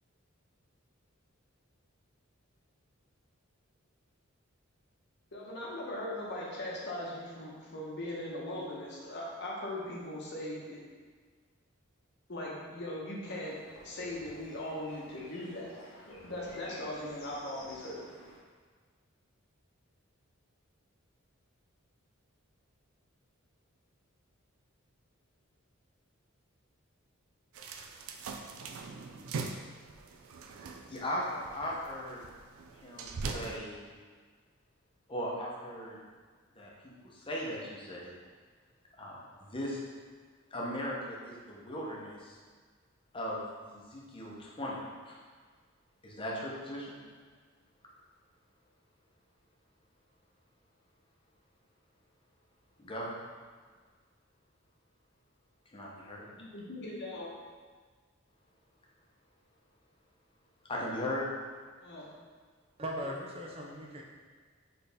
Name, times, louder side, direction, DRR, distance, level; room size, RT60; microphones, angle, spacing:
voice 1, 5.3-10.8 12.3-13.6 13.8-15.7 16.1-18.1 56.2-57.3 61.8-62.1, left 1 dB, 55° left, -4 dB, 1.0 m, -39 dB
sound 1, 13.2-18.4, left 1 dB, 90° left, 0.9 m, -53 dB
sound 2, 27.5-33.6, right 4 dB, 90° right, 0.4 m, -42 dB
voice 2, 30.9-32.2 32.8-33.9 35.1-36.0 36.6-38.1 39.0-39.8 40.5-42.4 43.1-44.8 45.0-45.2 46.0-47.0 52.8-53.2 55.7-56.3 60.7-61.2, equal, 25° left, -4 dB, 0.8 m, -38 dB
voice 3, 62.8-64.0, equal, 30° right, -1 dB, 0.4 m, -38 dB
4.5 x 3.4 x 3.4 m, 1.5 s
head